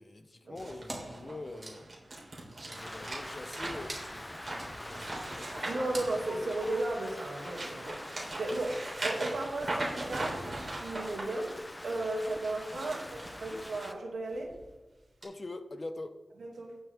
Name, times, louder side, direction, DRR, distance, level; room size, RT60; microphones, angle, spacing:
voice 1, 0.0-1.9 2.6-5.8 12.8-13.6 15.2-16.2, left 2 dB, 40° left, 9 dB, 0.9 m, -45 dB
sound 1, 0.6-6.7 7.2-11.2 12.5-13.9 14.3-14.6 15.2-15.3, right 2 dB, 40° right, 3.6 m, -40 dB
Wood, 0.9-7.6, right 1 dB, 20° right, 2.4 m, -46 dB
Rain, 2.8-13.9, left 1 dB, 15° left, 0.5 m, -45 dB
voice 2, 5.6-11.5 11.8-13.0 13.4-14.5 16.4-16.8, right 2 dB, 80° right, -1 dB, 2.6 m, -35 dB
17.5 x 7.0 x 3.6 m, 1.1 s
wide cardioid pair, 95°, 0 cm